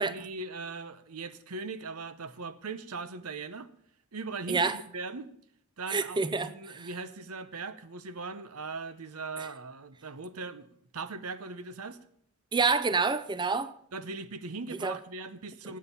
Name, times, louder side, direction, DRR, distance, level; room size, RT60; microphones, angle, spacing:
voice 1, 0.0-3.7 4.1-5.3 5.8-12.0 13.9-15.8, right 3 dB, 90° right, 0.9 m, -40 dB
voice 2, 5.9-6.9 9.4-9.5 12.5-13.7 14.8-15.0, right 4 dB, 20° right, 0.5 m, -28 dB
12.5 x 8.8 x 5.7 m
head